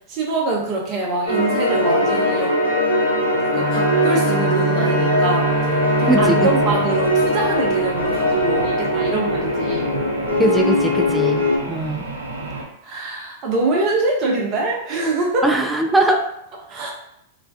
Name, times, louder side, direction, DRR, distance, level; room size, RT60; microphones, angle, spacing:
voice 1, 0.1-2.5 3.4-9.9 12.8-15.5 16.1-16.2 16.7-16.9, right 2 dB, 40° right, -1 dB, 0.7 m, -24 dB
sound 1, 1.3-11.6, left 1 dB, 85° left, 0.6 m, -20 dB
Bowed string instrument, 3.5-8.6, right 3 dB, 30° left, 1.0 m, -25 dB
sound 2, 5.3-12.6, right 2 dB, 80° right, 0.5 m, -32 dB
voice 2, 6.1-6.8 10.4-12.0 15.4-16.2, right 2 dB, 10° right, 3 dB, 0.3 m, -20 dB
2.4 x 2.2 x 2.3 m, 0.77 s
figure-of-eight pair, 100°, 0 cm